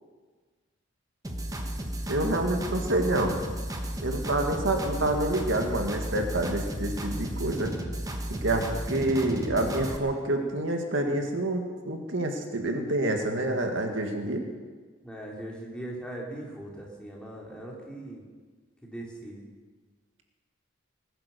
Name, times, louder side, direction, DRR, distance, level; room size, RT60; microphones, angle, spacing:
sound 1, 1.2-10.0, right 1 dB, 20° right, 1.4 m, -34 dB
voice 1, 2.1-3.4 4.0-7.7 8.3-14.4, right 1 dB, 80° right, 3 dB, 2.0 m, -28 dB
voice 2, 15.0-18.2 18.8-19.4, right 1 dB, 5° left, -3 dB, 3.1 m, -40 dB
20.0 x 10.5 x 6.8 m, 1.5 s
head